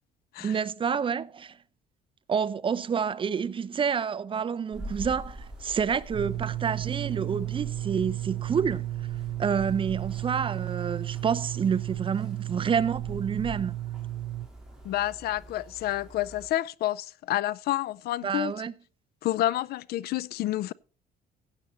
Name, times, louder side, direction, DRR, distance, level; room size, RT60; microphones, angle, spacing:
voice 1, 0.4-1.6 2.3-8.9 9.4-13.7 18.2-18.7, right 7 dB, 30° right, 0.6 m, -28 dB
sound 1, 4.7-16.5, right 1 dB, 5° right, 4.2 m, -45 dB
sound 2, 6.1-14.5, right 15 dB, 70° right, 0.6 m, -33 dB
voice 2, 14.8-18.5 19.2-20.7, left 14 dB, 70° left, 0.5 m, -29 dB
15.5 x 8.2 x 4.2 m
cardioid pair, 110°, 17 cm